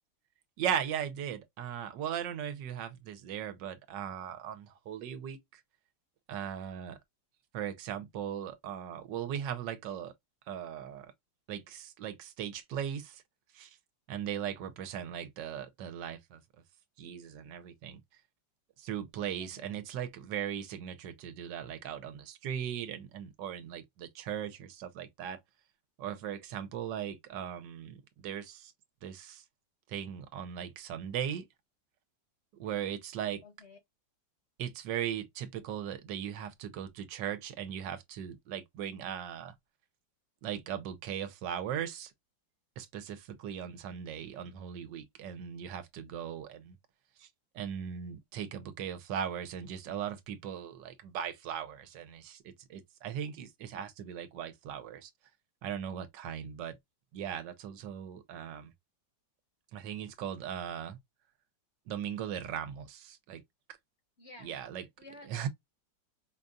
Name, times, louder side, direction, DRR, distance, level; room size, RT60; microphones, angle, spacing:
voice 1, 0.6-5.6 6.3-7.0 7.5-10.1 10.5-11.1 11.5-13.2 13.5-13.8 14.1-16.4 17.0-18.0 18.8-25.4 26.0-28.7 29.0-29.4 29.9-31.5 32.5-33.4 34.6-39.5 40.4-42.1 42.8-46.8 47.2-47.3 47.5-55.1 55.6-56.8 57.1-58.7 59.7-61.0 61.9-63.4 64.4-64.8 65.3-65.5, right 9 dB, 75° right, 1.3 m, -38 dB
voice 2, 19.4-19.8 33.4-33.8 64.2-64.6 65.0-65.5, left 2 dB, 45° left, 0.9 m, -52 dB
5.1 x 2.3 x 2.4 m
omnidirectional pair, 2.0 m